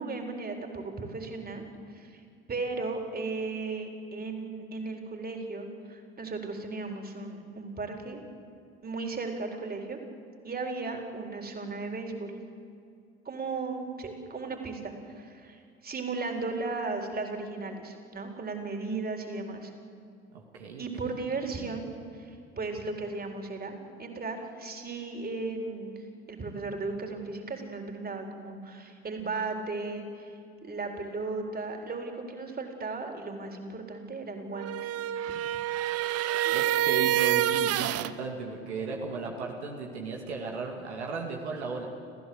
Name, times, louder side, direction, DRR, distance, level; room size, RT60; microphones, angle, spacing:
voice 1, 0.0-1.6 1.9-2.2 2.5-8.2 8.8-10.0 10.4-12.3 13.2-15.6 15.8-19.7 20.8-21.9 22.1-30.3 30.6-35.0 36.4-36.5, right 3 dB, 30° right, 3 dB, 4.2 m, -36 dB
voice 2, 20.3-21.1 36.5-41.9, right 4 dB, 80° right, 1 dB, 2.4 m, -36 dB
sound 1, 34.5-38.1, right 13 dB, 45° right, 0.9 m, -27 dB
29.5 x 15.0 x 8.0 m, 2.3 s
hypercardioid pair, 65°, 33 cm